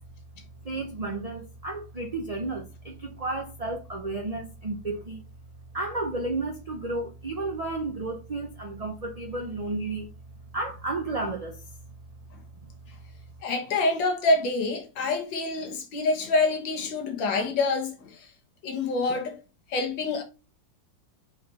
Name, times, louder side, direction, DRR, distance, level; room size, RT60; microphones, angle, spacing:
voice 1, 0.6-5.2 5.7-10.1 10.5-11.7, right 2 dB, 35° right, 0.6 m, -32 dB
voice 2, 13.4-18.3 18.6-19.4 19.7-20.2, left 3 dB, 85° left, 2.1 m, -26 dB
5.1 x 4.8 x 4.2 m
omnidirectional pair, 2.0 m